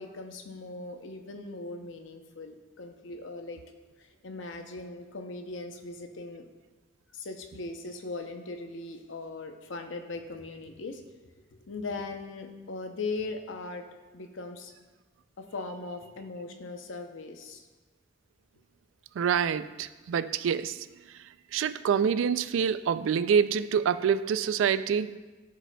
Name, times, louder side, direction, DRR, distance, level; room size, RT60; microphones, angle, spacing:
voice 1, 0.0-3.6 4.0-6.5 7.1-11.0 11.7-13.9 14.1-14.7 15.4-17.7, left 3 dB, 90° left, 5 dB, 0.7 m, -39 dB
voice 2, 19.2-20.9 21.5-25.2, right 7 dB, 90° right, 13 dB, 0.3 m, -26 dB
13.0 x 4.9 x 2.2 m, 1.2 s
head